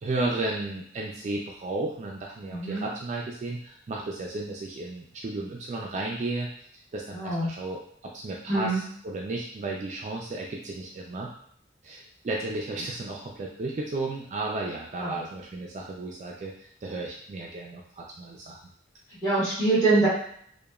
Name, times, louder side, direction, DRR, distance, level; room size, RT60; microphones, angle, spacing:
voice 1, 0.0-6.5 6.9-11.3 11.8-16.5 16.8-18.6, right 2 dB, 40° right, -1 dB, 0.3 m, -33 dB
voice 2, 2.4-2.9 7.1-7.5 8.5-8.8 15.0-15.2 19.2-20.1, right 2 dB, 20° left, -10 dB, 1.4 m, -24 dB
2.9 x 2.1 x 2.3 m, 0.64 s
head